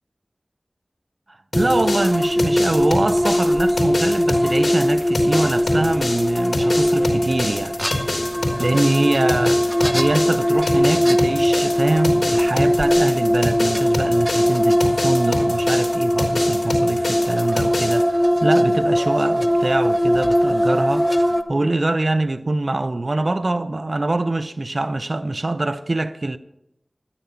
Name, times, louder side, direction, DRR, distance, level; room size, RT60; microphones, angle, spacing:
voice 1, 1.3-7.8 8.6-26.4, right 2 dB, 55° right, 0.6 m, -24 dB
sound 1, 1.5-18.0, left 2 dB, 70° left, 3.2 m, -27 dB
sound 2, 1.5-21.4, equal, ahead, 1.0 m, -20 dB
13.0 x 10.0 x 5.8 m
wide cardioid pair, 50°, 0 cm